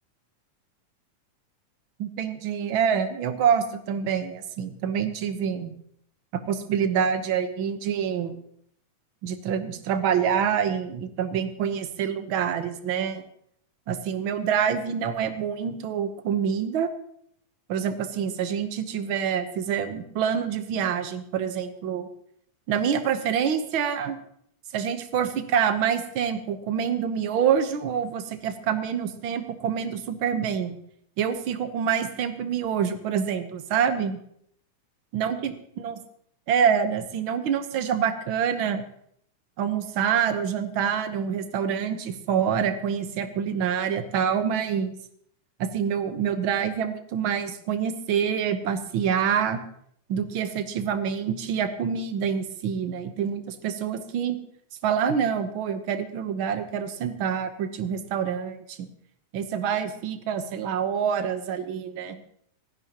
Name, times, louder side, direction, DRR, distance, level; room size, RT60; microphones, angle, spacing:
voice 1, 2.0-5.7 6.3-8.4 9.2-13.2 13.9-16.9 17.7-22.1 22.7-24.2 24.7-30.8 31.2-34.2 35.1-35.9 36.5-38.8 39.6-45.0 45.6-49.6 50.1-54.4 54.8-58.9 59.3-62.2, right 7 dB, 70° right, 8 dB, 1.2 m, -26 dB
29.0 x 10.5 x 2.9 m, 0.68 s
omnidirectional pair, 3.5 m